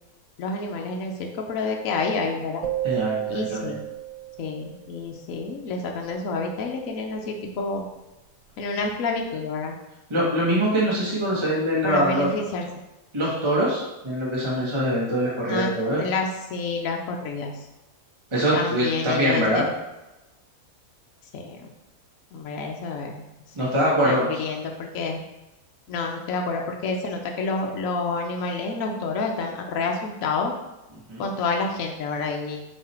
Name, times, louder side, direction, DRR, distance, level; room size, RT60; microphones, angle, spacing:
voice 1, 0.4-2.6 3.3-3.8 4.4-7.9 8.6-9.8 11.8-12.7 15.5-15.7 16.0-17.6 18.5-19.7 21.3-21.7 22.3-23.2 23.6-23.7 24.0-25.2 25.9-30.5 31.2-32.6, left 4 dB, 70° left, 2 dB, 1.1 m, -28 dB
sound 1, 2.6-4.9, right 13 dB, 70° right, 0.8 m, -31 dB
voice 2, 2.8-3.7 10.1-12.3 13.1-16.0 18.3-19.6 23.5-24.3 31.1-31.3, equal, 20° right, -6 dB, 1.3 m, -23 dB
7.4 x 3.2 x 4.3 m, 1.0 s
omnidirectional pair, 1.5 m